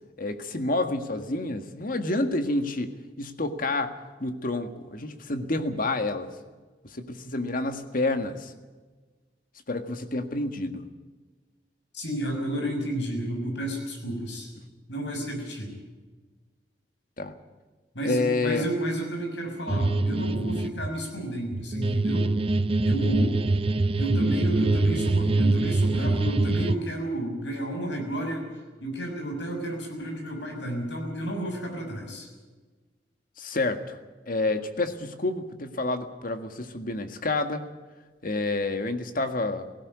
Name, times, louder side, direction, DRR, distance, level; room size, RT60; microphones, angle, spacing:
voice 1, 0.2-2.9 3.2-3.9 4.2-6.3 6.8-8.5 9.7-10.8 17.2-17.3 18.0-18.6 33.4-34.0 34.3-37.6 38.2-39.7, left 2 dB, 50° left, 7 dB, 1.7 m, -29 dB
voice 2, 11.9-14.5 14.9-15.8 17.9-22.3 22.8-23.5 24.0-32.3, right 1 dB, 80° left, 3 dB, 6.3 m, -31 dB
sound 1, 19.7-20.9 21.5-26.8, right 2 dB, 35° right, 0.6 m, -24 dB
18.0 x 16.0 x 9.6 m, 1.3 s
head